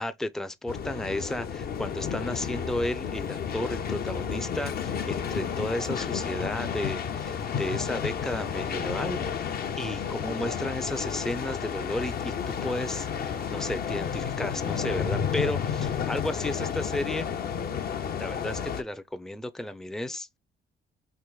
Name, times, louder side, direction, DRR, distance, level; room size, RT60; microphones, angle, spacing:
voice 1, 0.0-9.4 9.8-17.3 18.2-20.4, left 1 dB, ahead, 0.4 m, -33 dB
sound 1, 0.7-18.8, left 7 dB, 50° left, 0.6 m, -31 dB
4.5 x 3.0 x 2.2 m
cardioid pair, 90°, 20 cm